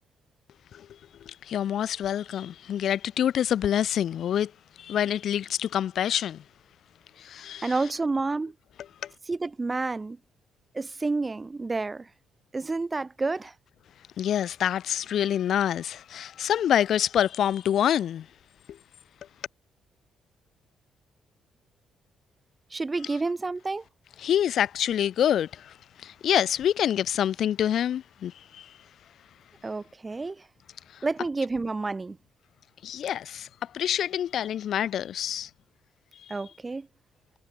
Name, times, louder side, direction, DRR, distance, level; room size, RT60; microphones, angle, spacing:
voice 1, 1.3-4.5 4.8-6.4 7.2-7.7 9.0-9.1 14.2-18.3 24.2-28.7 30.9-31.0 32.8-33.5 33.7-35.5 36.3-36.4, left 10 dB, 65° left, 0.3 m, -26 dB
voice 2, 7.6-8.5 9.3-10.2 10.7-12.1 12.5-13.5 22.7-23.8 29.6-30.5 31.0-32.2 36.3-36.9, right 3 dB, 25° right, 0.3 m, -29 dB
cardioid pair, 90°, 0 cm